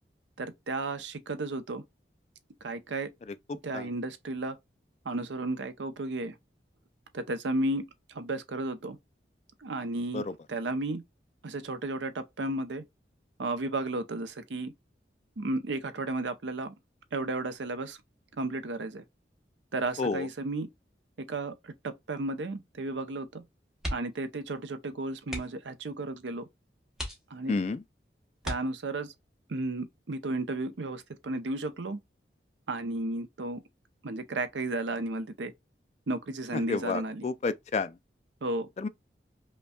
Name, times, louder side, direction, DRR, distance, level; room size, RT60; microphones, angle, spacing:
voice 1, 0.4-1.8 2.6-3.1 3.6-4.6 5.0-6.4 7.1-7.8 8.1-9.0 9.6-11.0 11.4-12.8 13.4-14.7 15.4-16.7 17.1-18.0 18.4-19.0 19.7-20.7 21.2-23.4 23.9-26.5 27.3-27.6 28.4-29.1 29.5-32.0 32.7-33.6 34.0-35.5 36.1-37.2 38.4-38.7, right 2 dB, 85° right, 0.6 m, -33 dB
sound 1, 23.8-24.3 24.6-24.8 25.2-25.7 26.3-26.4 26.9-27.7 28.4-29.2 30.7-31.1 31.4-31.5, equal, 5° right, 1.0 m, -38 dB
voice 2, 27.5-27.8 36.5-37.9 38.8-38.9, left 4 dB, 35° left, 0.3 m, -30 dB
5.2 x 2.2 x 2.2 m
head